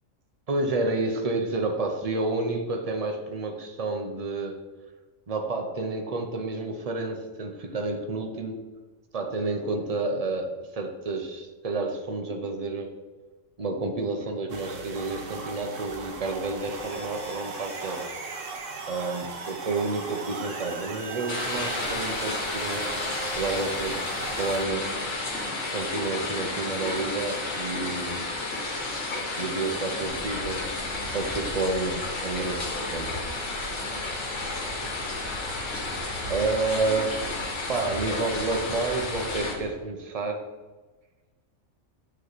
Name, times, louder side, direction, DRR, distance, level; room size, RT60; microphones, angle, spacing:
voice 1, 0.5-4.6 5.3-8.6 9.1-13.0 13.6-18.2 18.9-22.8 23.4-24.8 25.7-28.3 29.4-30.7 31.1-33.4 36.3-37.2 37.7-40.4, right 3 dB, 35° right, 4 dB, 0.6 m, -30 dB
sound 1, 14.5-24.6, right 4 dB, 70° right, 1.2 m, -37 dB
sound 2, 21.3-39.6, left 2 dB, 65° left, 1.5 m, -32 dB
sound 3, 30.1-39.8, right 2 dB, 85° right, 1.6 m, -43 dB
9.4 x 3.3 x 4.0 m, 1.2 s
omnidirectional pair, 1.4 m